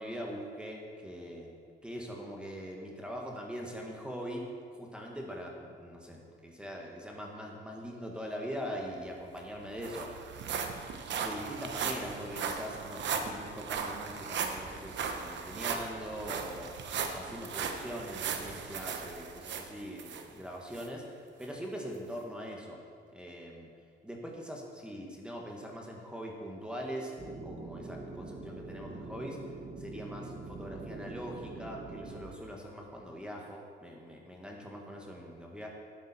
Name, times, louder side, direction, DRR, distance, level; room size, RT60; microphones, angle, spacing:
voice 1, 0.0-1.5 1.8-10.2 11.1-16.7 17.1-22.8 23.1-23.7 24.0-27.1 27.4-29.4 29.8-35.7, equal, 5° right, -1 dB, 1.6 m, -42 dB
sound 1, 9.0-9.1 9.4-20.2 20.7-20.9 21.4-21.5, right 6 dB, 65° right, 1.0 m, -37 dB
sound 2, 27.2-32.3, right 3 dB, 35° right, 1.2 m, -44 dB
11.5 x 8.1 x 4.4 m, 2.1 s
cardioid pair, 90°, 20 cm